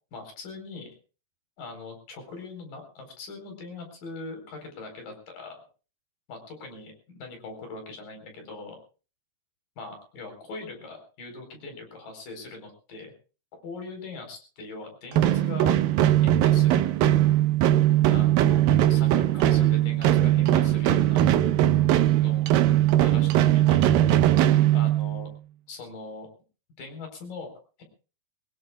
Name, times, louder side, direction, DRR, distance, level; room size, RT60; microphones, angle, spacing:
voice 1, 0.1-0.9 1.6-5.6 6.3-8.8 9.8-13.1 13.5-15.7 16.2-16.9 18.1-21.2 22.2-22.5 23.0-23.8 24.7-25.3 25.7-26.3 26.8-27.5 27.8-27.9, left 3 dB, 55° left, 4 dB, 5.9 m, -41 dB
sound 1, 15.1-25.3, right 13 dB, 75° right, 2.6 m, -20 dB
23.5 x 20.0 x 2.4 m, 0.37 s
omnidirectional pair, 4.6 m